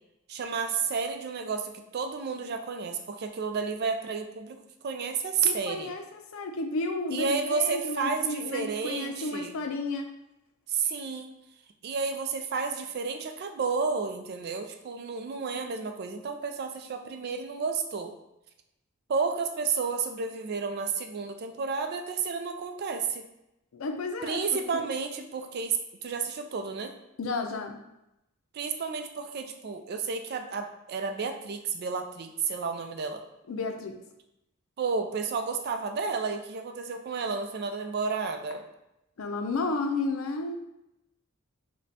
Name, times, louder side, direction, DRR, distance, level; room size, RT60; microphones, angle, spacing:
voice 1, 0.3-5.9 7.1-9.5 10.7-11.3 11.8-18.1 19.1-23.2 24.2-26.9 28.5-33.2 34.8-38.7, right 5 dB, 50° right, 6 dB, 0.4 m, -31 dB
voice 2, 5.4-10.1 23.7-24.4 24.7-24.8 27.2-27.8 33.5-34.0 39.2-40.6, left 3 dB, 75° left, 5 dB, 0.5 m, -32 dB
5.1 x 2.2 x 2.7 m, 0.87 s
head